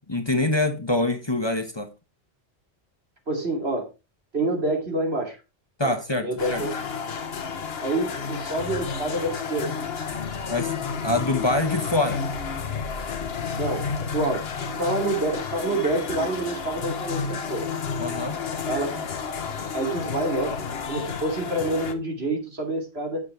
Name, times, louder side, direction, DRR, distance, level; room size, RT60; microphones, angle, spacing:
voice 1, 0.1-1.9 5.8-6.6 10.5-10.7 11.0-12.2 18.0-18.4, left 2 dB, 25° left, 1.1 m, -25 dB
voice 2, 3.3-3.8 4.3-5.4 5.8-5.9 6.2-6.7 7.8-9.7 13.6-14.4 14.8-17.6 18.7-19.0 19.7-20.5 20.9-23.2, right 2 dB, 75° right, 3.1 m, -27 dB
sound 1, 6.4-21.9, left 6 dB, 70° left, 1.3 m, -31 dB
8.3 x 7.5 x 4.6 m
omnidirectional pair, 1.1 m